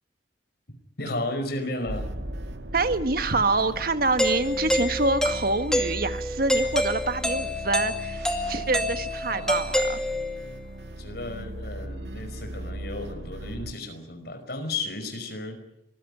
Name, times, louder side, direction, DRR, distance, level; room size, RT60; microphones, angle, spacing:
voice 1, 1.0-2.1 3.6-3.7 9.3-9.5 10.8-15.6, left 2 dB, 60° left, 6 dB, 5.2 m, -34 dB
sound 1, 1.9-13.7, right 1 dB, 75° right, 2.1 m, -37 dB
voice 2, 2.7-8.2 8.5-10.0, right 3 dB, 55° right, 10 dB, 1.4 m, -26 dB
Doorbell, 4.2-10.5, left 1 dB, 5° left, 2.3 m, -27 dB
24.5 x 15.5 x 10.0 m, 0.80 s
head